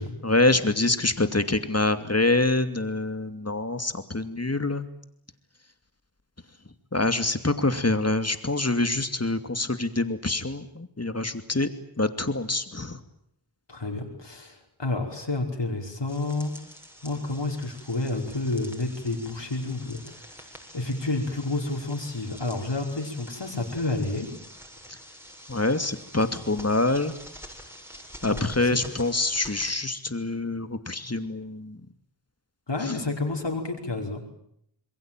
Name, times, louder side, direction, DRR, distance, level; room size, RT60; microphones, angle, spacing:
voice 1, 0.2-4.9 6.9-11.7 12.0-13.0 25.5-27.2 28.2-31.8, left 2 dB, 30° left, 10 dB, 2.7 m, -25 dB
voice 2, 13.7-16.5 17.0-20.5 20.7-24.3 28.2-28.8 32.7-34.3, left 2 dB, 60° left, 2 dB, 5.3 m, -30 dB
sound 1, 16.1-29.7, equal, 5° right, 7.7 m, -46 dB
27.0 x 22.0 x 9.2 m, 0.73 s
wide cardioid pair, 45°, 48 cm